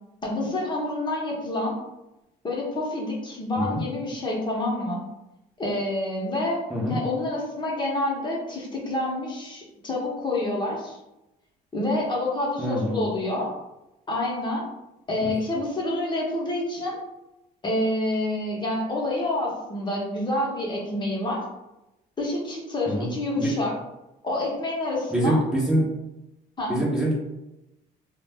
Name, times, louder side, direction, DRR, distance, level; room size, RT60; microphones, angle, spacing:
voice 1, 0.2-1.8 2.4-5.0 5.6-11.0 11.7-13.5 14.1-14.7 15.1-17.0 17.6-21.4 22.2-23.7 24.2-25.4 26.6-26.8, left 1 dB, 25° left, -3 dB, 0.7 m, -28 dB
voice 2, 12.6-13.0 15.2-15.3 22.9-23.1 23.4-23.5 25.1-25.8 26.7-27.2, right 1 dB, 5° right, -6 dB, 0.6 m, -24 dB
2.3 x 2.1 x 3.4 m, 0.94 s
cardioid pair, 110°, 17 cm